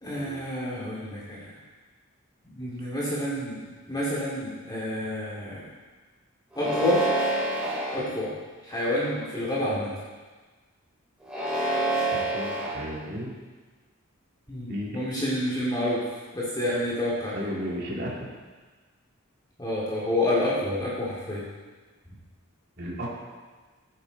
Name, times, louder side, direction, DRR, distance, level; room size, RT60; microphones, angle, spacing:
voice 1, 0.0-1.6 2.6-5.7 6.6-7.0 7.9-8.3 8.6-9.9 14.5-16.0 16.3-17.4 19.6-21.4, left 1 dB, 20° left, -7 dB, 2.4 m, -28 dB
sound 1, 6.5-8.0 8.7-9.2 11.2-12.7, right 1 dB, 5° right, 3.4 m, -27 dB
voice 2, 12.1-13.3 14.7-15.0 17.3-18.3 22.8-23.1, equal, 45° right, -4 dB, 2.6 m, -34 dB
14.0 x 8.8 x 4.0 m, 1.4 s
head